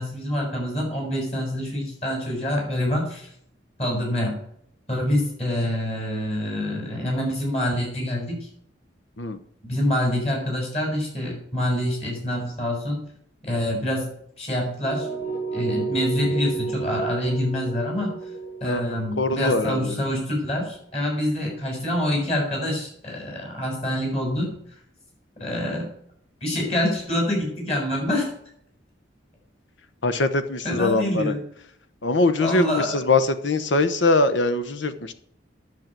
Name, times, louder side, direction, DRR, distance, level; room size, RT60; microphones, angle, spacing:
voice 1, 0.0-3.3 3.8-4.3 4.9-8.5 9.7-13.0 13.4-15.1 15.5-18.1 18.6-24.5 25.4-25.9 26.4-28.3 30.6-31.4 32.4-32.9, left 1 dB, 35° left, 0 dB, 6.9 m, -26 dB
sound 1, 14.8-20.7, right 4 dB, 55° left, 5.3 m, -31 dB
voice 2, 19.2-20.0 30.0-31.3 32.0-35.1, left 2 dB, 75° left, 11 dB, 1.0 m, -22 dB
11.0 x 7.6 x 9.1 m, 0.68 s
head